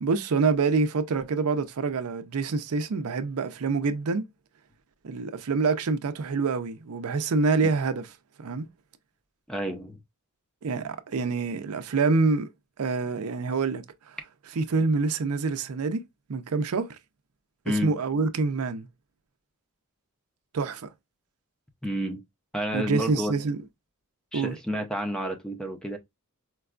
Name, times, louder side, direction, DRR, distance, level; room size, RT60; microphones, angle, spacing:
voice 1, 0.0-4.3 5.0-8.1 8.4-8.7 10.6-12.5 12.8-13.8 14.6-16.0 16.3-17.0 17.7-18.9 20.5-20.9 22.7-23.6 24.3-24.5, right 4 dB, 75° right, 0.5 m, -26 dB
voice 2, 9.5-10.0 17.6-18.0 21.8-22.2 22.5-23.3 24.3-26.0, equal, 5° left, 0.5 m, -30 dB
4.5 x 2.2 x 2.4 m
head